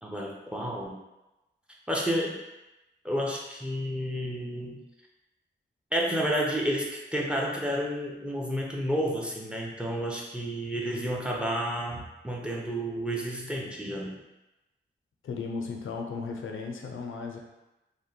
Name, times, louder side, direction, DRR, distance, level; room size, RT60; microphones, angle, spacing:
voice 1, 0.0-1.0 1.9-2.3 3.0-4.8 5.9-14.2, equal, 5° right, -2 dB, 0.5 m, -30 dB
voice 2, 15.2-17.4, left 4 dB, 85° left, 2 dB, 0.4 m, -35 dB
2.8 x 2.1 x 2.7 m, 0.98 s
cardioid pair, 60°, 20 cm